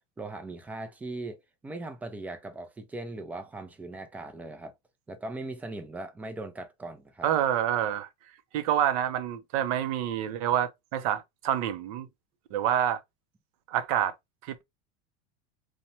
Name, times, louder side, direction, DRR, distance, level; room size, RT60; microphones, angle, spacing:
voice 1, 0.2-1.4 1.6-4.7 5.1-7.3, right 2 dB, 10° right, 0.4 m, -39 dB
voice 2, 7.2-8.1 8.5-12.1 12.5-13.0 13.7-14.1 14.4-14.6, right 10 dB, 70° right, 0.5 m, -27 dB
3.0 x 2.1 x 2.6 m
supercardioid pair, 150°, 19 cm